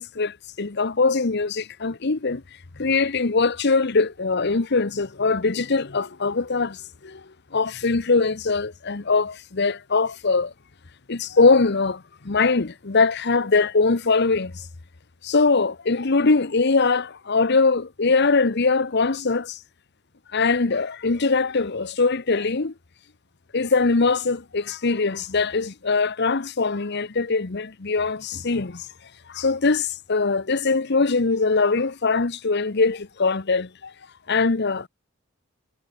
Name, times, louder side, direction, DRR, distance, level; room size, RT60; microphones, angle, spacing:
voice 1, 0.0-2.4 2.8-7.2 7.5-10.5 11.1-14.7 15.2-19.6 20.3-22.7 23.5-28.9 29.3-33.9 34.3-34.9, left 4 dB, 55° left, 1.0 m, -22 dB
head